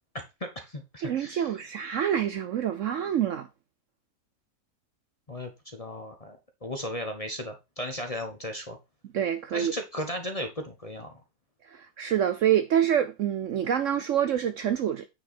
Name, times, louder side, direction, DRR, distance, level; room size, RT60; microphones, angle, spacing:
voice 1, 0.1-1.6 5.3-8.8 9.5-11.1, equal, 30° left, 0.8 m, -36 dB
voice 2, 1.0-3.5 9.1-9.7 11.7-15.1, right 9 dB, 65° right, 0.8 m, -26 dB
8.8 x 5.1 x 4.2 m
omnidirectional pair, 1.7 m